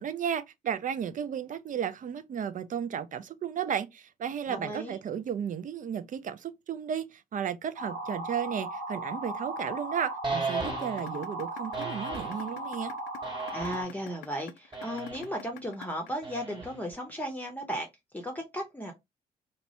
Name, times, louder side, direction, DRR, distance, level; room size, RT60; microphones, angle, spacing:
voice 1, 0.0-12.9, right 8 dB, 40° right, 0.4 m, -34 dB
voice 2, 4.5-5.0 13.5-17.9 18.1-18.9, equal, 10° left, 0.8 m, -35 dB
sound 1, 7.8-13.8, right 1 dB, 90° right, 0.6 m, -37 dB
sound 2, 10.2-11.1 11.7-12.4 13.2-14.0 14.7-15.3 16.2-16.9, right 4 dB, 20° right, 1.0 m, -36 dB
sound 3, 10.8-16.8, left 13 dB, 65° left, 0.4 m, -46 dB
2.9 x 2.2 x 2.8 m
hypercardioid pair, 40°, 21 cm